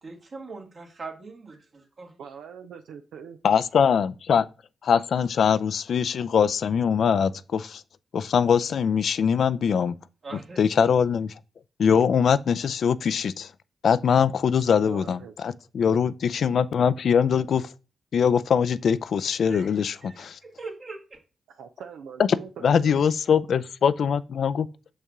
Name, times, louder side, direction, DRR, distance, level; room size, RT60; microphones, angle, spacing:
voice 1, 0.0-1.7 2.0-2.1 10.2-10.6 19.4-21.2, right 3 dB, 60° right, 2.1 m, -41 dB
voice 2, 2.2-3.4 14.8-15.3 21.5-23.0, right 7 dB, 80° right, 0.5 m, -42 dB
voice 3, 3.4-4.5 4.8-7.8 8.1-10.0 10.6-11.3 11.8-13.5 13.8-17.7 18.1-20.4 22.6-24.7, left 7 dB, 70° left, 0.4 m, -22 dB
6.4 x 5.5 x 3.6 m
supercardioid pair, 40°, 0 cm